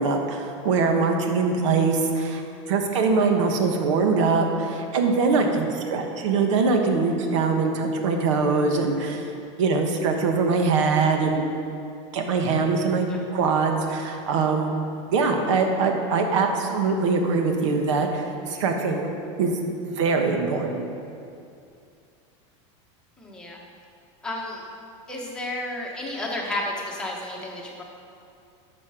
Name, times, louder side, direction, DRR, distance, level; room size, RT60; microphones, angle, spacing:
voice 1, 0.0-2.4 2.7-9.3 9.6-11.4 12.1-14.7 15.1-19.1 19.4-19.6 20.0-20.9, right 4 dB, 75° right, 4 dB, 1.3 m, -23 dB
voice 2, 23.2-23.6 24.2-24.6 25.1-27.8, left 1 dB, 5° left, -3 dB, 1.3 m, -32 dB
12.0 x 6.8 x 5.0 m, 2.5 s
supercardioid pair, 170°, 16 cm